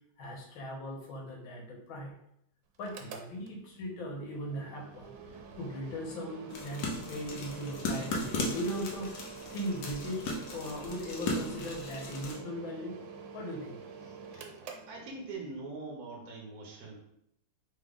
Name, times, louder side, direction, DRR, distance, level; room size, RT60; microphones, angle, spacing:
voice 1, 0.2-2.1 2.8-5.1 5.5-13.0 13.3-14.5, equal, 80° left, 0 dB, 1.7 m, -39 dB
Mechanical fan, 2.7-15.6, right 5 dB, 80° right, 1.3 m, -48 dB
sound 1, 6.5-12.3, left 2 dB, 65° left, 1.2 m, -37 dB
voice 2, 14.9-17.0, right 3 dB, 60° right, 0 dB, 1.2 m, -42 dB
3.7 x 3.7 x 3.5 m, 0.76 s
omnidirectional pair, 2.1 m